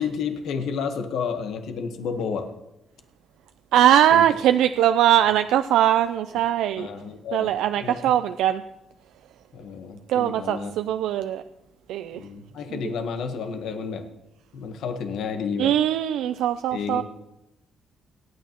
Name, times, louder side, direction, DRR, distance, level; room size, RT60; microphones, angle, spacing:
voice 1, 0.0-2.5 4.1-4.3 6.8-7.5 7.8-8.1 9.5-10.7 12.1-14.1 14.5-15.8 16.7-17.0, left 6 dB, 80° left, 7 dB, 1.2 m, -31 dB
voice 2, 3.7-6.9 7.3-8.6 10.1-11.4 11.9-12.2 12.7-12.8 15.6-17.0, right 11 dB, 85° right, 9 dB, 0.4 m, -21 dB
27.5 x 9.3 x 3.0 m, 0.93 s
cardioid pair, 90°, 0 cm